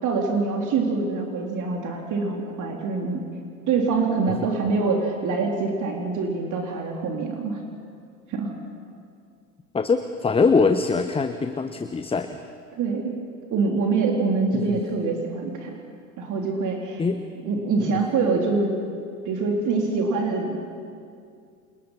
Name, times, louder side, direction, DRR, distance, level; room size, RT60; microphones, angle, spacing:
voice 1, 0.0-3.2 3.7-7.6 8.3-8.5 12.7-13.1 13.5-15.7 16.2-17.0 17.4-18.7 19.2-20.6, right 4 dB, 40° right, 1 dB, 3.8 m, -25 dB
voice 2, 9.7-12.4 14.6-14.7 17.0-17.2, left 4 dB, 10° left, 9 dB, 1.1 m, -22 dB
29.5 x 28.5 x 5.8 m, 2.3 s
figure-of-eight pair, 75°, 47 cm